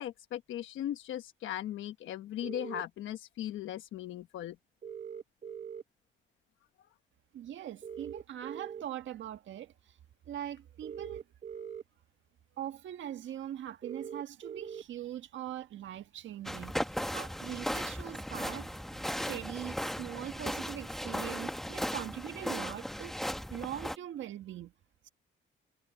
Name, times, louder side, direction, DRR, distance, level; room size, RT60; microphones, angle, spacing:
voice 1, 0.0-4.6, left 12 dB, 80° left, 1.1 m, -38 dB
sound 1, 2.4-2.8 4.8-5.8 7.8-8.8 10.8-11.8 13.8-14.8, right 8 dB, 40° right, 0.8 m, -42 dB
voice 2, 7.3-10.0 10.2-11.2 12.6-18.7 19.1-24.7 25.0-25.1, right 11 dB, 70° right, 1.6 m, -42 dB
sound 2, 16.4-24.0, equal, ahead, 1.4 m, -37 dB
cardioid pair, 90°, 20 cm